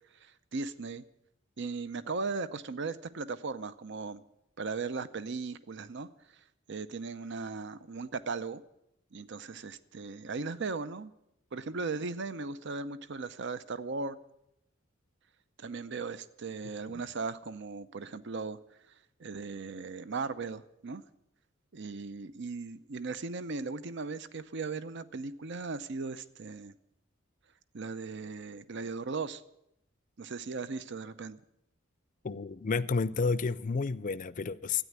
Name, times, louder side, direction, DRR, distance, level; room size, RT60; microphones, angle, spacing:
voice 1, 0.2-1.0 1.6-4.2 4.6-6.1 6.7-8.6 9.1-11.1 11.5-14.2 15.6-18.6 19.2-21.0 21.7-26.7 27.7-29.4 30.2-31.4, right 4 dB, 60° right, 0.6 m, -37 dB
voice 2, 32.2-34.8, left 4 dB, 40° left, 0.5 m, -30 dB
13.0 x 9.2 x 9.4 m
head